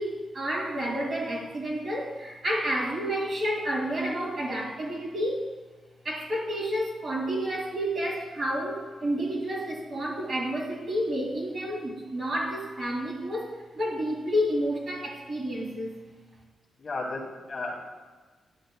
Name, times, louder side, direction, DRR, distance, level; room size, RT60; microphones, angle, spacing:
voice 1, 0.0-5.5 6.0-16.0, equal, 45° right, -3 dB, 2.2 m, -30 dB
voice 2, 16.8-17.8, left 2 dB, 45° left, 0 dB, 1.5 m, -34 dB
12.0 x 7.7 x 2.2 m, 1.3 s
wide cardioid pair, 120°, 0 cm